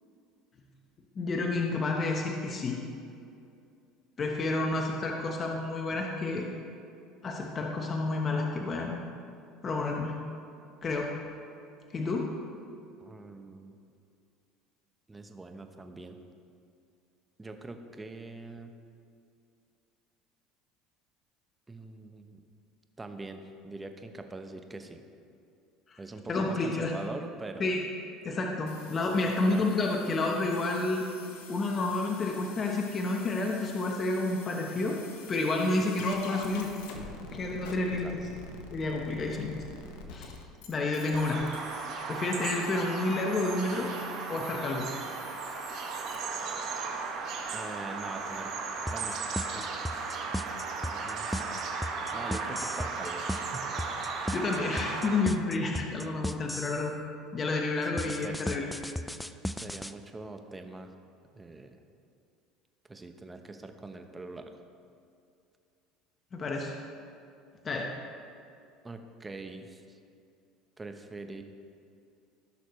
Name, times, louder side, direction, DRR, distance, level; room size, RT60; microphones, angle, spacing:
voice 1, 1.1-2.8 4.2-6.5 7.2-9.0 9.6-10.2 10.8-11.1 11.9-12.3 25.9-26.0 26.3-26.9 27.6-27.8 28.2-31.0 31.5-35.0 35.3-36.7 37.3-38.2 38.7-39.5 40.1-40.3 40.7-41.4 42.1-43.9 44.3-44.9 54.3-56.9 57.3-58.7 66.3-66.7 67.6-67.9, left 2 dB, 35° left, 1 dB, 1.0 m, -30 dB
voice 2, 13.0-13.8 15.1-16.2 17.4-18.7 21.7-22.4 23.0-25.0 26.0-27.7 29.4-29.7 35.8-36.1 37.8-38.2 39.3-39.5 47.5-48.5 48.9-49.2 49.5-49.7 50.9-51.6 52.1-53.7 57.8-58.4 59.5-60.9 61.3-61.8 62.9-64.6 68.8-70.0 70.8-71.4, right 2 dB, 15° right, 6 dB, 0.9 m, -43 dB
sound 1, 28.7-46.2, left 4 dB, 80° left, 1.1 m, -48 dB
Bird vocalization bird call bird song, 41.1-55.2, right 4 dB, 55° right, 1.6 m, -36 dB
sound 2, 48.9-56.9 58.0-59.9, equal, 5° left, 0.4 m, -35 dB
16.0 x 6.4 x 3.2 m, 2.5 s
supercardioid pair, 95°, 0 cm